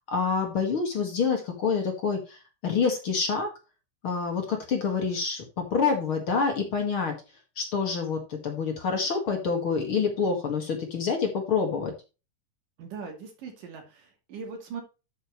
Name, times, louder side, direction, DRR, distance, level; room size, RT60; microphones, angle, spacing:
voice 1, 0.0-3.5 4.0-7.1 7.6-11.9, left 5 dB, 45° left, 3 dB, 2.3 m, -27 dB
voice 2, 12.8-14.8, right 5 dB, 85° right, 2 dB, 4.3 m, -40 dB
12.0 x 6.7 x 3.2 m, 0.30 s
omnidirectional pair, 3.7 m